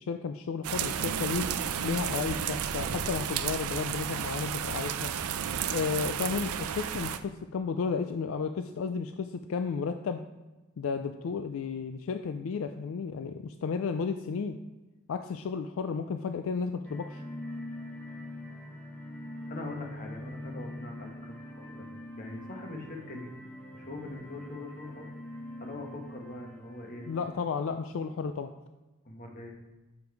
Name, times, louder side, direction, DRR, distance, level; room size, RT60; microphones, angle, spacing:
voice 1, 0.0-1.4 1.8-5.1 5.7-10.2 10.8-14.6 15.1-17.2 27.1-28.5, left 5 dB, 65° left, 8 dB, 0.3 m, -33 dB
sound 1, 0.6-7.2, right 8 dB, 85° right, 0.4 m, -32 dB
sound 2, 16.8-27.3, left 1 dB, 5° left, 1.0 m, -43 dB
voice 2, 19.5-21.9 22.2-23.3 23.7-25.1 25.6-27.1 29.0-29.6, left 2 dB, 40° left, 1 dB, 1.1 m, -42 dB
7.1 x 5.0 x 4.6 m, 1.1 s
head